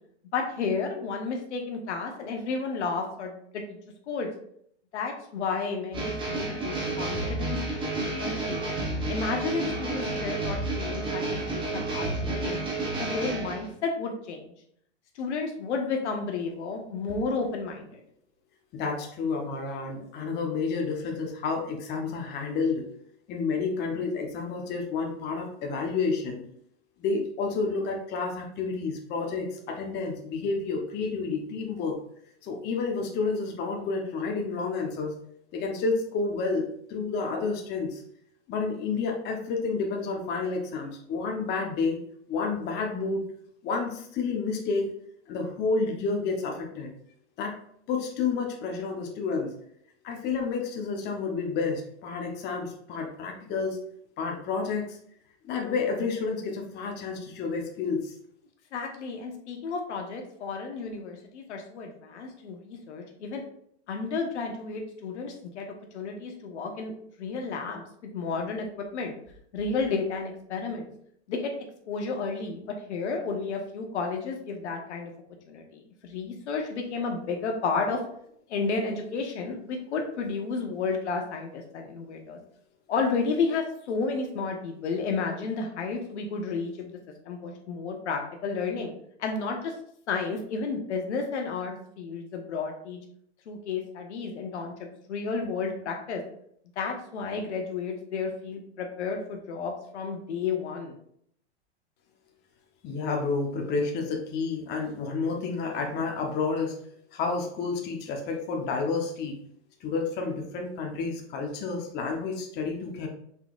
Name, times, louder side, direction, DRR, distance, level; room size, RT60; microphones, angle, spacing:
voice 1, 0.3-3.8 4.1-4.3 4.9-7.6 8.2-8.6 9.1-12.6 12.9-14.5 15.1-18.0 58.7-63.4 63.9-66.9 67.2-69.1 69.5-70.9 71.3-71.5 71.9-72.6 72.9-75.1 75.4-78.0 78.5-82.4 82.9-87.0 87.2-88.9 89.2-89.7 90.1-93.0 93.5-96.2 96.8-101.0, left 4 dB, 80° left, 2 dB, 1.1 m, -32 dB
sound 1, 5.9-13.7, right 2 dB, 15° right, 1.2 m, -31 dB
voice 2, 18.7-22.9 23.3-26.4 27.0-31.9 32.4-35.1 35.5-38.0 38.5-42.0 42.3-43.2 43.6-44.9 45.3-46.9 47.4-47.5 47.9-49.5 50.0-53.8 54.2-54.8 55.4-58.1 102.8-106.7 107.1-109.4 109.8-113.1, left 4 dB, 30° left, 1 dB, 0.9 m, -30 dB
5.6 x 3.9 x 2.4 m, 0.67 s
hypercardioid pair, 135°, 34 cm